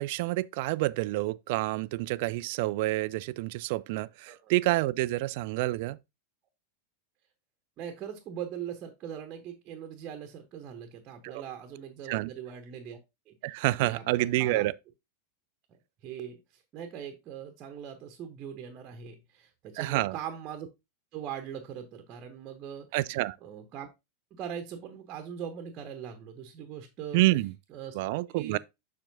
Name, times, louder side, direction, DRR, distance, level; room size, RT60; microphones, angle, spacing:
voice 1, 0.0-6.0 11.2-11.4 12.1-12.3 13.4-14.7 19.8-20.2 22.9-23.4 27.1-27.5 27.9-28.6, right 18 dB, 50° right, 0.3 m, -28 dB
voice 2, 7.8-13.0 13.3-13.4 13.8-14.7 16.0-20.7 21.1-22.9 23.4-23.9 24.3-27.2 27.7-27.9 28.3-28.6, right 8 dB, 35° right, 1.0 m, -41 dB
7.2 x 6.4 x 2.7 m
figure-of-eight pair, 90°, 0 cm